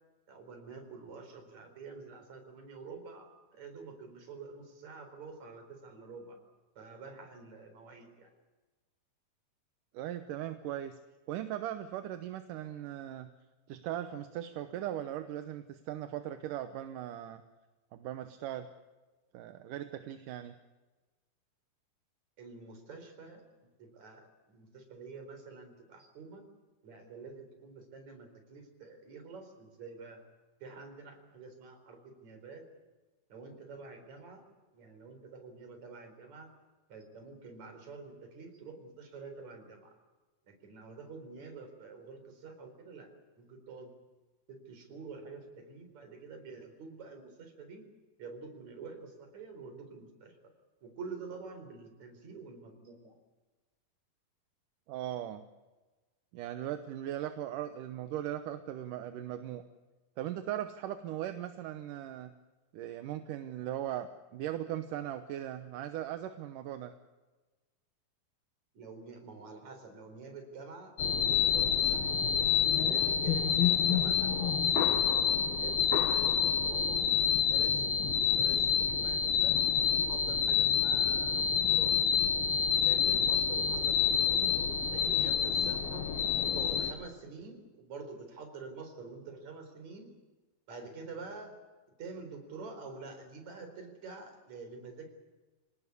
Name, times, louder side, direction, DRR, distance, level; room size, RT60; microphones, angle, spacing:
voice 1, 0.3-6.4 6.8-8.3 22.4-23.4 23.8-26.4 26.8-30.2 30.6-32.6 33.3-34.4 34.7-36.5 36.9-39.9 40.5-43.1 43.4-43.9 44.5-47.8 48.2-50.3 50.8-53.1 68.7-72.0 72.7-74.5 75.6-77.0 77.5-79.6 79.9-82.0 82.7-84.4 84.9-86.1 86.5-90.1 90.7-91.6 92.0-95.1, right 4 dB, 50° right, 6 dB, 5.3 m, -47 dB
voice 2, 9.9-11.0 11.3-13.3 13.7-17.4 17.9-18.7 19.3-20.5 54.9-55.5 56.3-59.6 60.2-62.3 62.7-66.9, right 11 dB, 70° right, 8 dB, 2.4 m, -38 dB
sound 1, 71.0-86.9, left 8 dB, 80° left, 3.5 m, -28 dB
27.0 x 18.5 x 8.4 m, 1.2 s
omnidirectional pair, 4.3 m